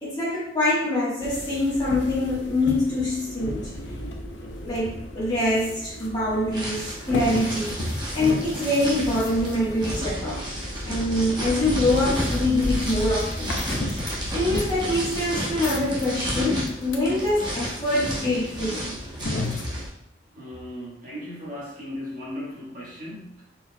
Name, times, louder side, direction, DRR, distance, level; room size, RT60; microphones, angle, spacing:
voice 1, 0.0-3.7 4.6-10.5 10.8-13.6 13.9-19.0, left 1 dB, 25° left, -8 dB, 1.4 m, -25 dB
sound 1, 1.2-19.9, left 1 dB, 85° left, 0.6 m, -33 dB
sound 2, 6.5-19.9, equal, 25° right, 0.9 m, -32 dB
voice 2, 20.3-23.4, left 1 dB, 45° right, -6 dB, 1.3 m, -37 dB
4.2 x 4.1 x 2.3 m, 0.73 s
head